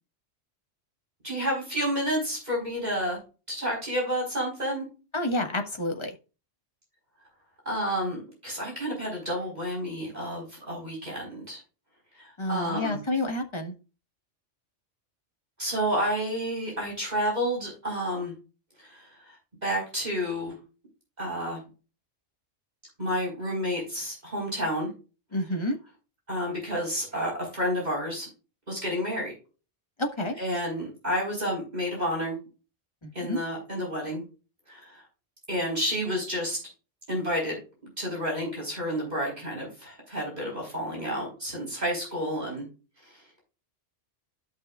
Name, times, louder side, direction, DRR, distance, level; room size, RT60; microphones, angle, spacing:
voice 1, 1.2-3.2 3.5-4.8 7.6-11.6 12.2-13.0 15.6-18.3 18.8-19.4 19.6-20.5 21.2-21.6 23.0-24.9 26.3-28.3 28.7-29.3 30.4-32.4 33.1-34.2 34.7-35.0 35.5-36.6 37.1-37.6 38.0-42.6 43.0-43.1, equal, 35° right, -3 dB, 4.5 m, -30 dB
voice 2, 5.1-6.1 12.4-13.7 25.3-25.8 30.0-30.4 33.0-33.4, left 1 dB, 25° left, 3 dB, 1.4 m, -29 dB
13.0 x 6.1 x 2.4 m, 0.33 s
omnidirectional pair, 1.2 m